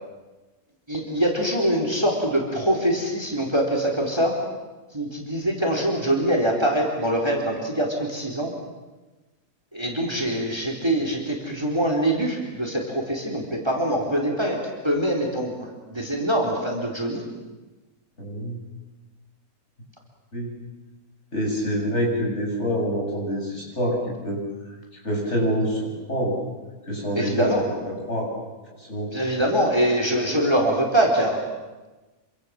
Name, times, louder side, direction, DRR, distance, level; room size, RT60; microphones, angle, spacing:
voice 1, 0.9-4.3 4.9-8.5 9.7-14.6 14.8-17.2 27.1-27.6 29.1-31.4, right 1 dB, 15° right, 1 dB, 4.0 m, -24 dB
voice 2, 18.2-18.6 20.3-20.5 21.3-24.4 25.0-25.8 26.1-26.4 26.9-27.6 28.1-28.3 28.8-29.1, equal, 50° left, -2 dB, 8.2 m, -26 dB
27.5 x 25.5 x 7.8 m, 1.2 s
omnidirectional pair, 1.5 m